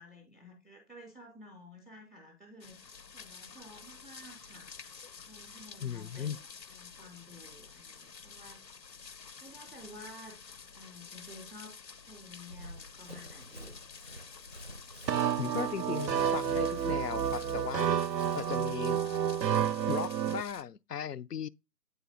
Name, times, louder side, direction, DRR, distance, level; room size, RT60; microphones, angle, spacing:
voice 1, 0.0-4.7 5.3-6.4 6.7-8.6 9.4-10.4 10.7-13.8, left 1 dB, ahead, 0.7 m, -52 dB
sound 1, 2.6-20.6, left 6 dB, 90° left, 0.9 m, -50 dB
voice 2, 5.8-6.4 15.4-17.9 18.3-19.0 19.9-21.5, left 8 dB, 70° left, 0.6 m, -37 dB
Run, 12.5-18.7, right 1 dB, 40° right, 0.5 m, -50 dB
sound 2, 15.1-20.4, right 9 dB, 85° right, 0.6 m, -30 dB
8.3 x 3.5 x 3.8 m
figure-of-eight pair, 170°, 49 cm